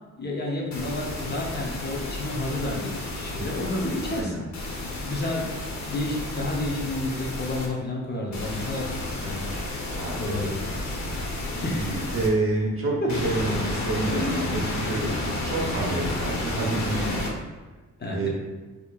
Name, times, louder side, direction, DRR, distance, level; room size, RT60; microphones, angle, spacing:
voice 1, 0.2-8.9 9.2-9.5 10.2-10.8 11.6-12.0 13.0-13.1 14.1-14.4 18.0-18.3, left 2 dB, 30° left, -2 dB, 0.8 m, -30 dB
sound 1, 0.7-4.2 4.5-7.7 8.3-12.3 13.1-17.3, left 2 dB, 60° left, 0.9 m, -31 dB
voice 2, 4.0-4.4 9.9-10.5 11.6-17.2 18.1-18.3, right 2 dB, 40° right, -2 dB, 1.1 m, -28 dB
4.3 x 2.9 x 2.4 m, 1.3 s
cardioid pair, 90°, 32 cm